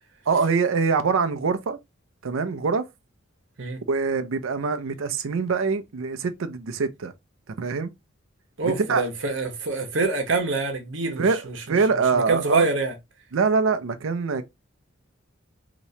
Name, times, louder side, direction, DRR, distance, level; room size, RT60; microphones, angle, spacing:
voice 1, 0.3-1.8 2.2-2.9 3.9-7.1 7.6-7.9 8.6-9.0 11.2-11.4 11.7-12.7 13.3-14.5, right 5 dB, 85° right, 0.5 m, -24 dB
voice 2, 8.6-11.8 12.1-12.9, right 3 dB, 65° right, 0.9 m, -26 dB
2.9 x 2.8 x 3.1 m
head